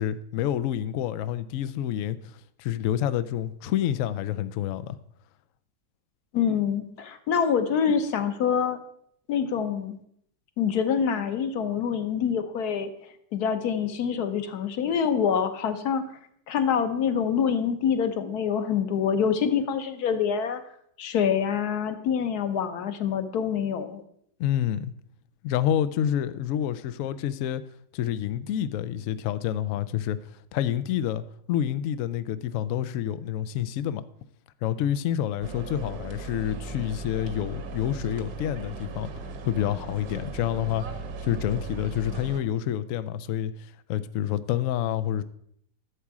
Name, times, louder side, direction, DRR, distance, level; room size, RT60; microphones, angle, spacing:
voice 1, 0.0-5.0 24.4-24.9 25.4-27.6 27.9-30.2 30.5-31.2 31.5-34.0 34.6-39.1 39.4-40.8 41.2-45.2, left 11 dB, 80° left, 0.7 m, -28 dB
voice 2, 6.3-8.8 9.3-10.0 10.6-12.9 13.3-16.0 16.5-20.6 21.0-24.0, left 7 dB, 65° left, 1.4 m, -26 dB
sound 1, 35.4-42.4, right 3 dB, 65° right, 1.5 m, -38 dB
11.5 x 7.3 x 4.8 m
omnidirectional pair, 1.9 m